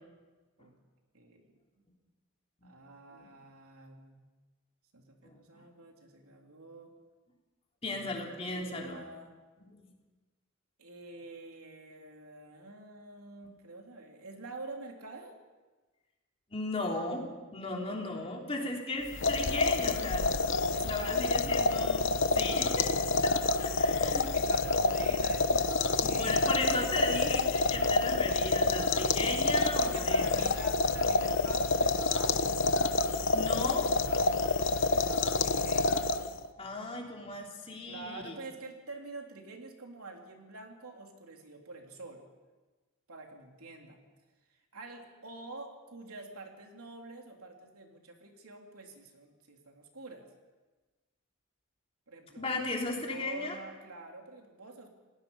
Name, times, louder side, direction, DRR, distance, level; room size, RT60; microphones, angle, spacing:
voice 1, 1.1-1.5 2.6-4.2 4.9-6.9 7.9-9.3 10.8-15.3 20.7-21.3 23.1-26.7 29.8-32.9 34.1-36.2 37.8-42.2 43.1-44.0 44.7-50.3 52.1-54.9, right 3 dB, 80° right, 2 dB, 3.4 m, -47 dB
voice 2, 5.2-5.6 7.8-9.0 9.7-9.9 16.5-20.3 20.7-22.1 22.3-22.9 23.2-23.3 23.6-24.2 26.0-30.5 33.3-33.9 36.5-38.3 52.4-53.6, left 2 dB, 25° left, 0 dB, 3.4 m, -36 dB
sound 1, 19.1-36.5, left 3 dB, 55° left, 1.0 m, -28 dB
30.0 x 18.5 x 5.6 m, 1.3 s
head